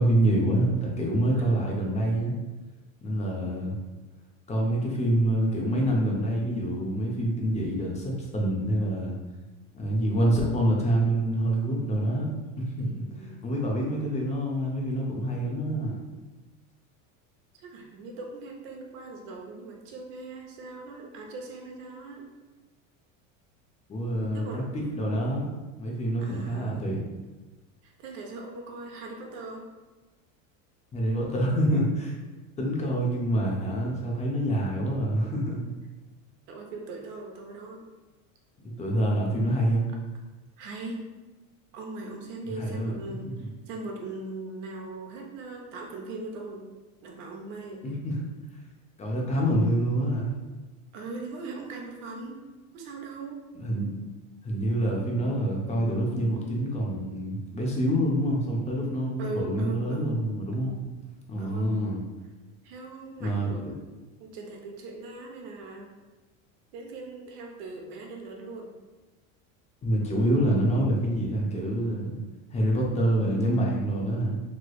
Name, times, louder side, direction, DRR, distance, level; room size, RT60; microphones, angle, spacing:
voice 1, 0.0-2.3 3.0-3.7 4.5-9.1 9.7-12.3 12.9-13.0 13.4-15.9 23.9-25.5 25.8-27.0 30.9-32.1 32.6-35.6 38.8-39.9 42.6-42.9 47.8-48.2 49.0-50.3 53.5-53.9 54.4-60.8 61.3-62.0 63.2-63.7 69.8-72.2 72.5-74.4, right 1 dB, 15° left, -2 dB, 0.6 m, -26 dB
voice 2, 1.3-2.1 12.8-13.4 17.5-22.3 24.3-24.6 26.2-26.8 27.8-29.7 36.5-37.8 40.6-41.0 41.7-46.7 47.0-47.8 50.9-52.4 52.7-53.4 59.2-60.1 61.4-61.7 62.6-63.7 64.2-65.9 66.7-68.7, right 2 dB, 70° right, 1 dB, 0.8 m, -40 dB
3.2 x 2.9 x 2.3 m, 1.2 s
supercardioid pair, 125°, 39 cm